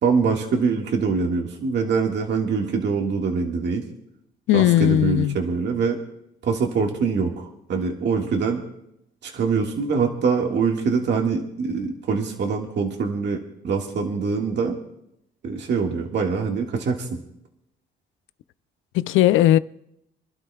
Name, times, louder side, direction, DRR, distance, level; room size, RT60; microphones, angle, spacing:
voice 1, 0.0-3.9 4.5-6.0 6.4-8.6 9.2-14.8 15.4-17.1, right 5 dB, 60° right, 1.8 m, -24 dB
voice 2, 4.5-5.4 18.9-19.6, left 13 dB, 85° left, 0.5 m, -17 dB
29.5 x 12.0 x 2.3 m
cardioid pair, 90°, 20 cm